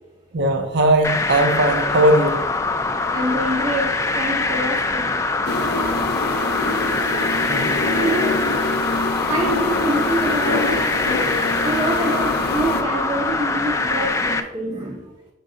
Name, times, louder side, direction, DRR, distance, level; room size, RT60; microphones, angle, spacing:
voice 1, 0.3-2.4 7.5-7.7, right 1 dB, 65° right, 0.6 m, -18 dB
sound 1, 1.0-14.4, left 3 dB, 15° left, 0.4 m, -23 dB
voice 2, 3.1-5.2 8.0-8.6 9.3-15.1, right 1 dB, 25° right, 0.6 m, -26 dB
sound 2, 5.4-12.8, left 2 dB, 55° left, 0.6 m, -25 dB
5.3 x 5.2 x 3.7 m
head